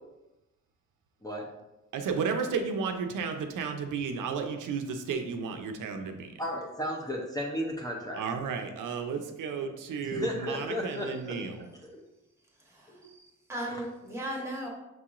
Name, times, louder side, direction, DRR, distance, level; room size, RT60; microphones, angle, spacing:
voice 1, 1.9-6.3 8.1-11.7, right 5 dB, 85° right, 5 dB, 0.5 m, -33 dB
voice 2, 6.4-8.2 10.0-11.4 11.8-11.9 12.9-13.1, left 1 dB, 10° left, -2 dB, 0.5 m, -34 dB
voice 3, 12.7-14.7, right 1 dB, 10° right, -2 dB, 1.1 m, -37 dB
6.1 x 2.9 x 2.4 m, 0.96 s
wide cardioid pair, 120°, 31 cm